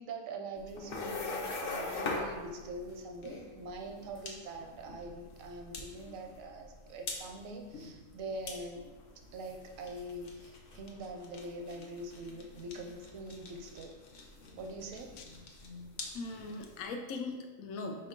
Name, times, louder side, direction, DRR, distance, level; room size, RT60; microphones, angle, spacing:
voice 1, 0.0-8.9 9.3-14.0 14.6-15.2, right 2 dB, 85° right, 3 dB, 1.0 m, -44 dB
sound 1, 0.5-16.8, left 3 dB, 55° left, 0.7 m, -44 dB
voice 2, 16.1-18.1, left 3 dB, 90° left, 4 dB, 1.0 m, -40 dB
4.5 x 2.9 x 3.6 m, 1.3 s
omnidirectional pair, 1.4 m